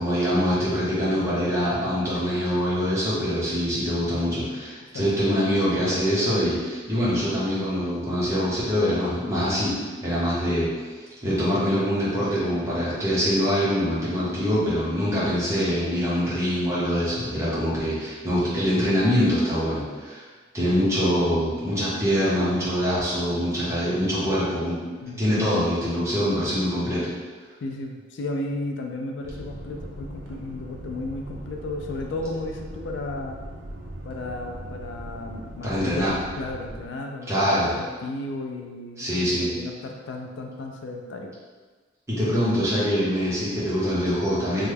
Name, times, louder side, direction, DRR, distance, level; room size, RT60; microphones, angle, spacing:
voice 1, 0.0-10.7 11.2-20.2 20.5-24.8 25.2-27.1 35.6-36.1 37.3-37.7 39.0-39.5 42.1-44.7, equal, 15° right, -9 dB, 0.8 m, -24 dB
voice 2, 27.6-33.4 34.0-36.1 36.4-41.3, left 2 dB, 70° left, 2 dB, 0.3 m, -34 dB
sound 1, 29.2-36.9, right 1 dB, 65° right, 0.5 m, -39 dB
2.9 x 2.2 x 3.3 m, 1.4 s
head